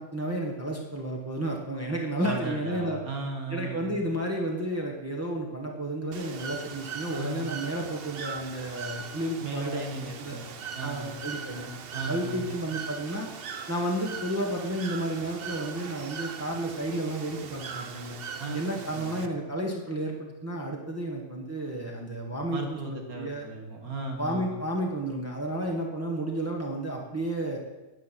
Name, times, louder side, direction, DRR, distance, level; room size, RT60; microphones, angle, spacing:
voice 1, 0.0-3.0 3.5-9.8 10.2-10.4 10.8-11.7 12.1-13.3 13.7-18.2 18.5-23.5 24.2-27.6, right 1 dB, 10° right, -1 dB, 1.7 m, -32 dB
voice 2, 2.2-4.1 7.1-7.6 9.4-11.2 11.9-12.6 18.4-18.6 18.9-19.3 22.5-24.6, right 2 dB, 75° right, 3 dB, 2.3 m, -36 dB
Bird / Water, 6.1-19.3, right 6 dB, 50° right, 0.8 m, -40 dB
10.5 x 8.6 x 7.6 m, 1.1 s
omnidirectional pair, 1.5 m